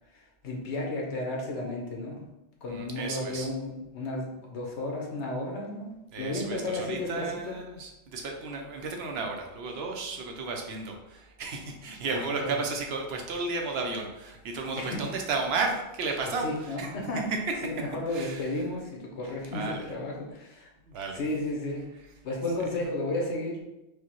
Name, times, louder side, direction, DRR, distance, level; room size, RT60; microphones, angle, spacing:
voice 1, 0.1-2.2 2.6-5.9 6.2-7.6 12.1-12.5 14.7-15.0 16.4-17.2 17.6-20.7 21.1-21.9 22.2-23.6, left 2 dB, 80° left, -1 dB, 1.1 m, -33 dB
voice 2, 2.7-3.5 6.1-16.9 17.3-17.4 18.1-18.6 19.5-19.8 20.9-21.2, right 3 dB, 70° right, 2 dB, 0.8 m, -33 dB
4.7 x 2.2 x 3.0 m, 0.96 s
omnidirectional pair, 1.1 m